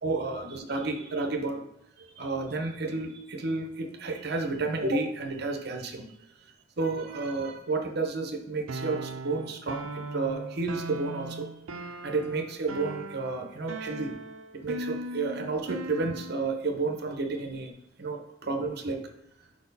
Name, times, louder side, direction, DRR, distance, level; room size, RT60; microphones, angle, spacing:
voice 1, 0.0-1.6 2.0-6.0 6.8-11.5 12.0-14.1 14.5-17.7 18.0-19.0, right 3 dB, 55° right, 4 dB, 0.8 m, -31 dB
sound 1, 8.7-16.6, right 2 dB, 85° right, 0.5 m, -39 dB
4.8 x 4.3 x 5.3 m, 0.77 s
head